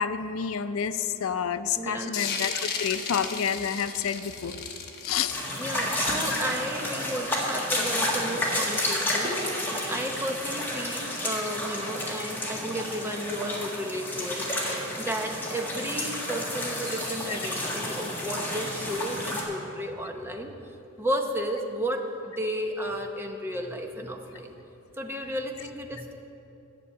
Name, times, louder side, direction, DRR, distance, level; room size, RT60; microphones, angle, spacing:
voice 1, 0.0-4.6 5.0-5.4, left 7 dB, 90° left, 12 dB, 0.5 m, -29 dB
voice 2, 1.8-2.2 5.6-14.4 15.0-20.5 21.0-24.5 25.0-26.1, equal, 10° right, 3 dB, 0.8 m, -33 dB
sound 1, 2.1-7.4, left 5 dB, 50° left, 1.1 m, -35 dB
sound 2, 5.3-19.4, left 1 dB, 10° left, 1.7 m, -31 dB
11.0 x 6.9 x 8.4 m, 2.9 s
head